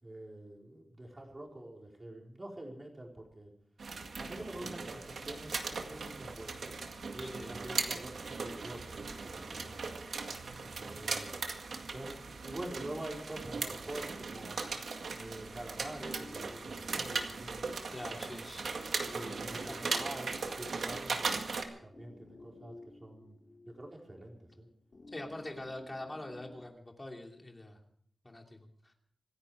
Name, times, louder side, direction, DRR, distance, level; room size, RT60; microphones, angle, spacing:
voice 1, 0.0-3.5 4.2-6.7 7.1-9.8 10.8-11.3 11.9-12.2 12.4-14.6 15.2-17.6 19.1-22.8 23.0-23.3 23.7-24.7, right 1 dB, 25° right, 0 dB, 4.5 m, -46 dB
sound 1, 3.8-21.6, right 4 dB, 85° right, 2.0 m, -38 dB
sound 2, 14.3-26.6, left 2 dB, 45° left, 3.3 m, -55 dB
voice 2, 17.9-18.7 19.2-19.8 25.1-27.8 28.2-28.9, left 1 dB, 20° left, 2 dB, 2.8 m, -45 dB
26.0 x 10.5 x 5.0 m, 0.63 s
wide cardioid pair, 135°, 0 cm